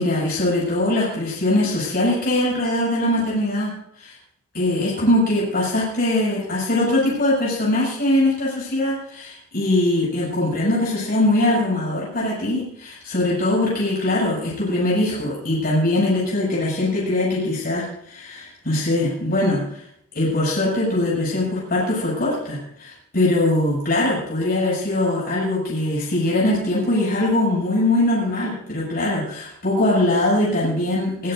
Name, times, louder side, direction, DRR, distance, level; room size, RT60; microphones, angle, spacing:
voice 1, 0.0-4.1 4.5-19.8 20.1-31.3, left 1 dB, 45° left, -6 dB, 8.0 m, -21 dB
23.0 x 17.5 x 2.7 m, 0.69 s
head